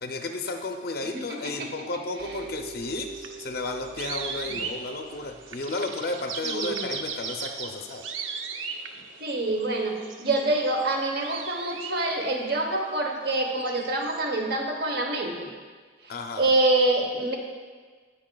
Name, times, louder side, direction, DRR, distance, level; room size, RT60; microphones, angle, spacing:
voice 1, 0.0-8.0 16.1-16.5, left 2 dB, 50° left, 4 dB, 0.5 m, -33 dB
voice 2, 1.1-1.7 2.2-2.3 4.5-4.6 6.5-7.0 9.2-15.5 16.0-17.4, right 2 dB, 55° right, 2 dB, 1.0 m, -26 dB
sound 1, 2.2-12.5 13.4-14.3, right 5 dB, 90° right, 0.6 m, -37 dB
16.0 x 5.5 x 2.3 m, 1.5 s
head